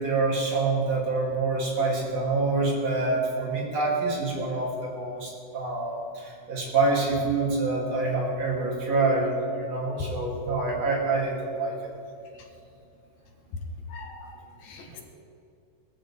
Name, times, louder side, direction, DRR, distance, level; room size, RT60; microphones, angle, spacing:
voice 1, 0.0-11.7 14.9-15.0, right 3 dB, 55° right, -3 dB, 4.0 m, -26 dB
voice 2, 13.9-15.0, left 3 dB, 70° left, 2 dB, 2.6 m, -43 dB
21.5 x 14.0 x 3.5 m, 2.6 s
omnidirectional pair, 3.5 m